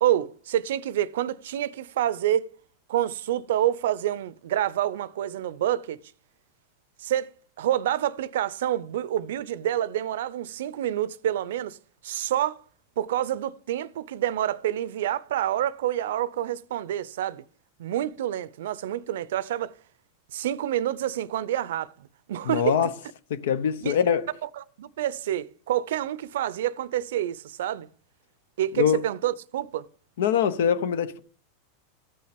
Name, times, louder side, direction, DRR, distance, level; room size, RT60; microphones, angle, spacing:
voice 1, 0.0-2.5 2.9-6.0 7.0-7.3 7.6-11.8 12.0-12.6 13.0-17.4 17.8-19.7 20.3-21.9 22.3-22.8 23.8-24.0 24.4-27.9 28.6-29.9, right 12 dB, 80° right, 0.5 m, -27 dB
voice 2, 22.4-22.9 23.3-24.3 28.8-29.0 30.2-31.2, left 8 dB, 80° left, 0.9 m, -23 dB
14.0 x 5.5 x 5.1 m
supercardioid pair, 125°, 0 cm